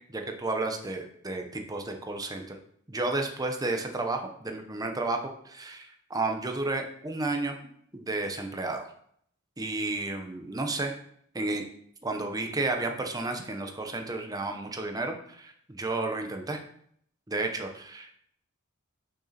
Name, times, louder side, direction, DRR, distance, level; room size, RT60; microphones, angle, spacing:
voice 1, 0.1-2.6 2.9-7.6 7.9-8.9 9.6-10.9 11.3-11.6 12.0-16.6 17.3-18.2, right 2 dB, 20° right, 4 dB, 1.0 m, -32 dB
6.4 x 6.2 x 4.3 m, 0.66 s
head